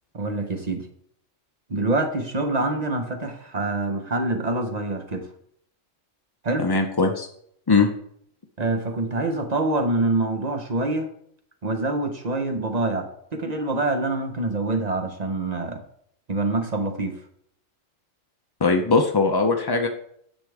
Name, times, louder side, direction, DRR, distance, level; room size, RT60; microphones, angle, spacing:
voice 1, 0.1-0.9 1.7-5.3 6.4-6.7 8.6-11.1 11.6-15.8 16.3-17.2, right 2 dB, 35° right, 5 dB, 1.0 m, -25 dB
voice 2, 6.6-7.3 7.7-7.9 18.6-19.9, left 4 dB, 40° left, 4 dB, 0.3 m, -20 dB
9.7 x 6.3 x 3.5 m, 0.68 s
omnidirectional pair, 1.3 m